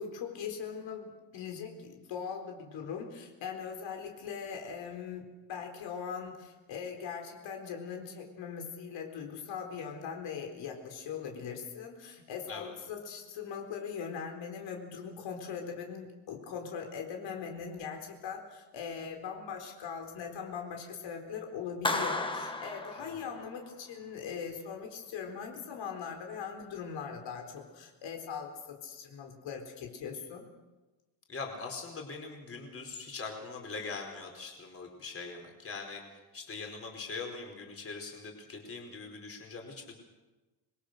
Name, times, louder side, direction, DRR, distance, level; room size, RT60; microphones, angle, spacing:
voice 1, 0.0-30.5, left 6 dB, 75° left, 3 dB, 4.2 m, -40 dB
Clapping, 21.8-23.7, left 2 dB, 10° left, 1.4 m, -34 dB
voice 2, 31.3-36.0 36.3-39.9, left 4 dB, 30° left, 2 dB, 4.6 m, -42 dB
26.5 x 22.0 x 6.7 m, 1.2 s
cardioid pair, 160°, 45 cm